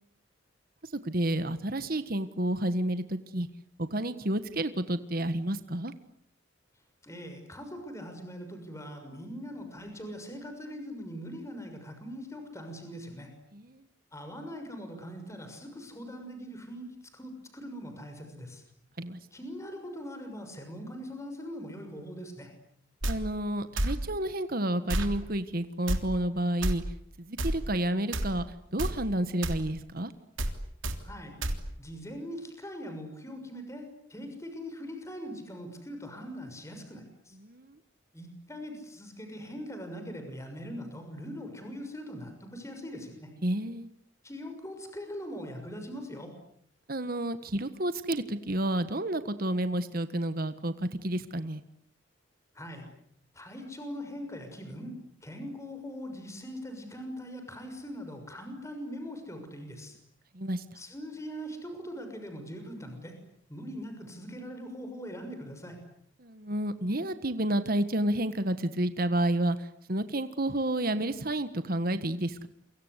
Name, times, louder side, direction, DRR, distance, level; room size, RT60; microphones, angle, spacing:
voice 1, 0.9-3.5 3.8-5.9 13.5-13.8 19.0-19.2 23.0-26.8 27.2-28.4 28.7-30.1 37.4-37.8 43.4-43.9 46.9-51.6 60.3-60.6 66.2-72.5, right 1 dB, 50° right, 11 dB, 1.5 m, -30 dB
voice 2, 7.0-13.3 14.1-16.8 17.1-18.6 19.3-22.5 31.0-31.4 31.8-37.4 38.1-43.3 44.2-46.3 52.5-52.9 53.3-54.9 55.2-59.9 60.7-63.1 63.5-65.8, equal, 15° left, 6 dB, 6.4 m, -41 dB
sound 1, 23.0-23.2 23.8-24.0 24.9-25.1 25.9-26.0 26.6-26.7 27.4-27.6 28.1-28.3 28.8-29.0 29.4-29.6 30.4-30.5 30.8-31.0 31.4-31.6, right 1 dB, 90° right, 3.4 m, -29 dB
29.0 x 25.0 x 8.2 m, 0.67 s
head